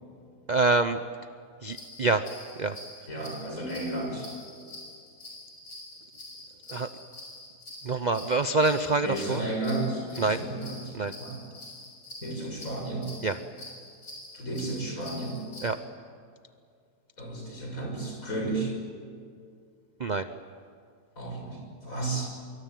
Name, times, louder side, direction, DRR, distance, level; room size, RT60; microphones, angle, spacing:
voice 1, 0.5-1.0 1.6-2.3 2.6-2.8 6.7-6.9 7.8-9.4 10.2-10.4 10.9-11.1 13.2-13.4 15.6-15.8 20.0-20.3, right 3 dB, 40° right, 10 dB, 0.6 m, -25 dB
sound 1, 1.7-15.7, left 2 dB, 85° left, 7.2 m, -46 dB
voice 2, 3.1-4.3 9.0-11.4 12.2-13.1 14.3-15.4 17.2-18.8 21.2-22.3, right 2 dB, 55° left, 1 dB, 6.6 m, -33 dB
25.0 x 23.5 x 9.3 m, 2.3 s
omnidirectional pair, 1.7 m